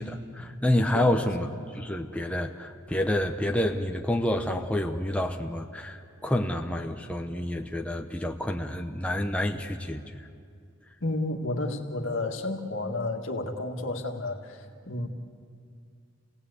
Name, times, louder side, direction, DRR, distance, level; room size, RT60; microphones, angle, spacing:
voice 1, 0.0-1.5 1.7-10.3, left 1 dB, 5° left, 3 dB, 0.8 m, -28 dB
voice 2, 0.9-1.3 11.0-15.1, left 2 dB, 65° left, 4 dB, 1.9 m, -31 dB
28.5 x 18.0 x 8.3 m, 2.3 s
head